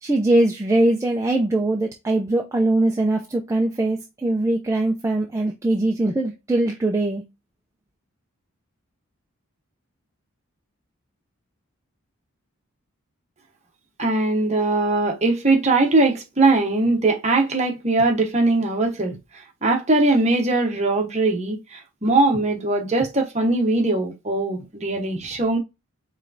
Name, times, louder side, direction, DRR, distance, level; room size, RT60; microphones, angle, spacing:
voice 1, 0.0-7.2, right 2 dB, 15° right, 0.4 m, -21 dB
voice 2, 14.0-19.2 19.6-25.6, right 2 dB, 30° right, 0.9 m, -20 dB
4.9 x 3.2 x 2.5 m
head